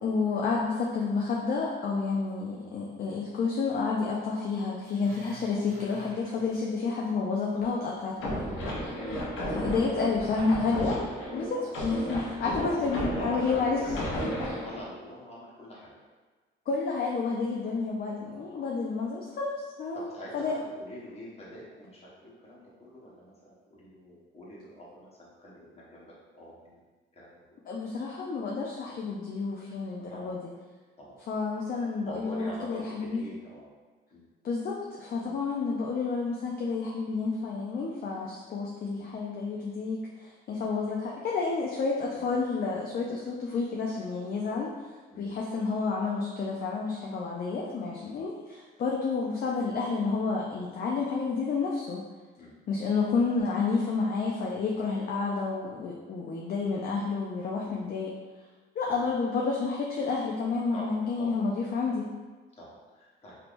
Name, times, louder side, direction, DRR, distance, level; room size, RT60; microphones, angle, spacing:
voice 1, 0.0-8.8 9.5-11.1 11.3-13.8 16.7-19.5 19.8-20.0 20.3-20.5 27.7-30.4 31.3-33.2 34.4-44.7 45.2-52.0 52.7-58.1 58.8-62.1, left 4 dB, 50° left, -2 dB, 0.5 m, -30 dB
Growling, 4.8-7.1 7.4-7.8 8.1-8.2, equal, 45° right, 1.2 m, -51 dB
sound 1, 8.2-14.8, equal, 85° left, 0.8 m, -34 dB
voice 2, 9.3-10.0 10.3-10.4 11.6-11.7 12.4-13.9 14.5-15.9 17.6-17.8 18.5-18.7 19.9-26.8 27.1-27.6 30.1-30.3 31.0-31.2 32.0-33.7 34.1-34.2 35.2-35.4 39.0-39.1 40.6-40.7 42.1-42.3 45.1-45.4 48.0-48.2 52.4-52.5 57.6-57.8 58.9-59.1 60.7-61.4 62.6-63.4, equal, 30° left, -6 dB, 1.2 m, -45 dB
3.4 x 2.8 x 2.5 m, 1.3 s
cardioid pair, 90°, 20 cm